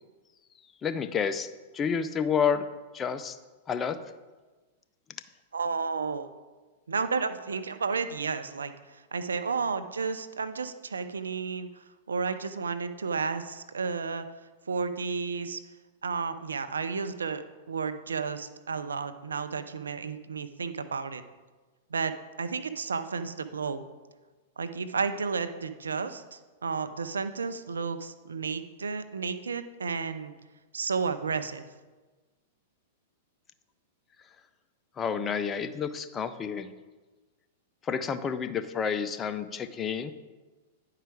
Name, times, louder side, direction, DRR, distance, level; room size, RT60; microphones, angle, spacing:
voice 1, 0.8-1.5 1.7-2.6 2.9-3.4 3.7-4.0 35.0-36.7 37.8-40.1, left 7 dB, 25° left, 10 dB, 0.5 m, -29 dB
voice 2, 5.5-6.3 6.9-14.3 14.7-15.6 16.0-21.2 21.9-23.8 24.6-30.3 30.7-31.6, right 5 dB, 85° right, 11 dB, 0.5 m, -32 dB
10.0 x 4.8 x 4.8 m, 1.3 s
hypercardioid pair, 110°, 0 cm